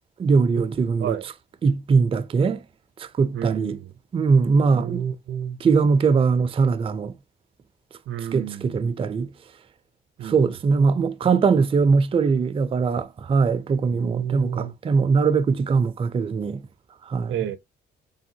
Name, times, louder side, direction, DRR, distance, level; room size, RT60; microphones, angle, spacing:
voice 1, 0.2-1.1 1.6-2.6 3.0-3.8 4.1-5.0 5.6-7.1 8.3-9.3 10.2-16.6 17.1-17.3, right 5 dB, 30° right, 0.4 m, -21 dB
voice 2, 3.3-3.9 4.7-5.6 8.1-8.8 10.2-10.4 13.9-14.7 17.3-17.6, right 9 dB, 75° right, 0.6 m, -30 dB
3.4 x 2.1 x 2.7 m
cardioid pair, 90°, 20 cm